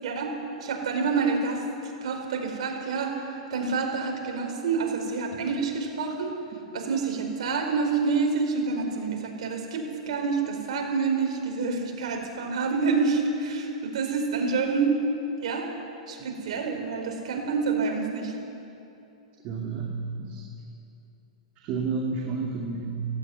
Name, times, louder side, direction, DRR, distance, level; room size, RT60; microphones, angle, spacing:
voice 1, 0.0-6.3 6.7-14.9 15.4-15.7 16.1-18.3, right 4 dB, 70° right, 2 dB, 4.6 m, -28 dB
voice 2, 19.4-19.9 20.2-20.5 21.6-23.1, right 4 dB, 35° right, -1 dB, 2.5 m, -31 dB
17.0 x 16.5 x 9.6 m, 2.8 s
hypercardioid pair, 140°, 4 cm